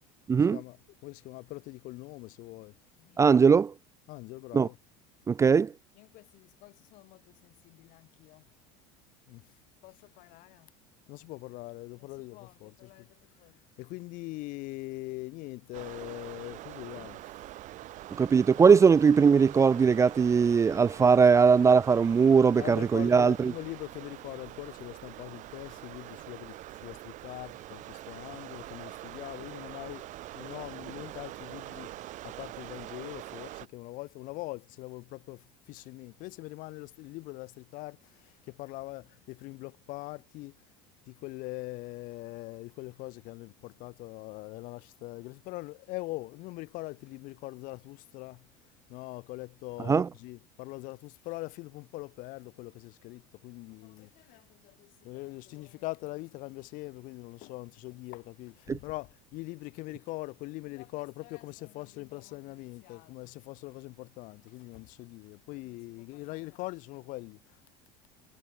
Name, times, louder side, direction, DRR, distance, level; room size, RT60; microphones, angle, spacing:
voice 1, 0.3-0.6 3.2-3.7 4.5-4.7 5.3-5.7 18.2-23.5 49.9-50.1 58.7-58.8, right 6 dB, 20° right, 0.4 m, -20 dB
voice 2, 1.0-3.3 4.1-4.8 6.0-8.4 9.3-9.4 9.8-10.7 11.1-17.2 22.6-30.0 30.3-40.6 41.1-48.4 48.9-67.6, left 21 dB, 65° left, 2.8 m, -42 dB
sound 1, 15.7-33.7, right 15 dB, 55° right, 4.3 m, -44 dB
supercardioid pair, 105°, 15 cm